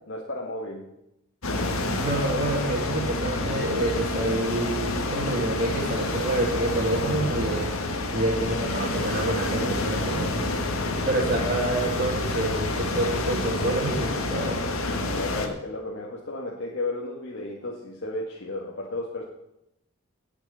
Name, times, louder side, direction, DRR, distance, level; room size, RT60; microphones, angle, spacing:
voice 1, 0.1-0.9 15.1-19.2, left 2 dB, 55° left, -3 dB, 1.8 m, -33 dB
sound 1, 1.4-15.5, left 2 dB, 75° left, 1.8 m, -28 dB
voice 2, 2.0-7.7 8.1-10.5 11.1-14.6, right 2 dB, 40° right, -2 dB, 2.3 m, -28 dB
18.0 x 6.2 x 6.9 m, 0.85 s
head